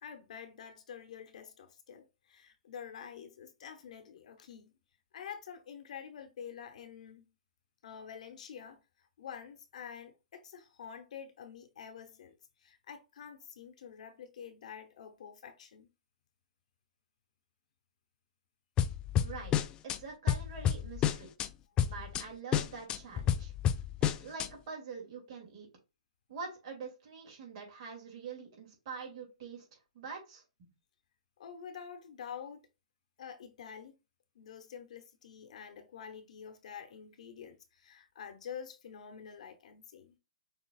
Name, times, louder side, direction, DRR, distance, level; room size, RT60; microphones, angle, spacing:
voice 1, 0.0-4.7 5.1-7.3 7.8-8.8 9.2-15.9 31.4-32.7 33.2-33.9 34.3-40.2, left 7 dB, 65° left, 1.0 m, -47 dB
sound 1, 18.8-20.0 20.3-21.5 21.8-22.2 22.5-24.5, left 9 dB, 20° left, 0.3 m, -30 dB
voice 2, 19.2-19.5 19.8-21.3 21.8-23.5 24.0-25.7 26.3-30.7, right 5 dB, 50° right, 2.5 m, -45 dB
6.3 x 3.2 x 2.4 m
hypercardioid pair, 145°, 4 cm